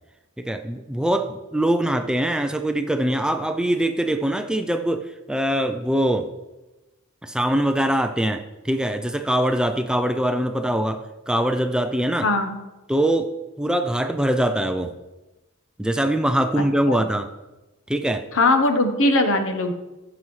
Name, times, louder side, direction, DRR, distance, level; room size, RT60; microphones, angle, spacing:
voice 1, 0.4-6.3 7.2-12.3 12.9-13.3 13.6-14.9 15.8-17.3 17.9-18.2, right 1 dB, 5° right, 7 dB, 0.3 m, -23 dB
voice 2, 12.2-12.6 16.9-17.0 18.3-19.7, left 2 dB, 60° left, 7 dB, 1.0 m, -20 dB
14.5 x 6.1 x 3.2 m, 1.1 s
head